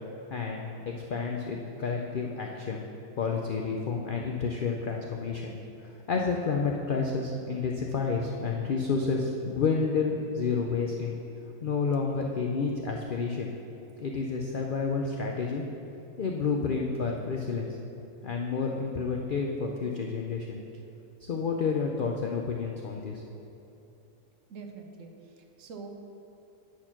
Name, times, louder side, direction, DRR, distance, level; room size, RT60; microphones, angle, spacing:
voice 1, 0.3-0.7 1.1-2.8 3.2-5.6 5.8-11.1 11.6-13.5 14.0-15.6 16.2-17.7 18.2-20.6 21.2-23.2, left 5 dB, 85° left, 1 dB, 0.4 m, -30 dB
voice 2, 24.5-25.9, right 4 dB, 60° right, 3 dB, 1.0 m, -45 dB
9.4 x 4.4 x 5.8 m, 2.9 s
omnidirectional pair, 1.6 m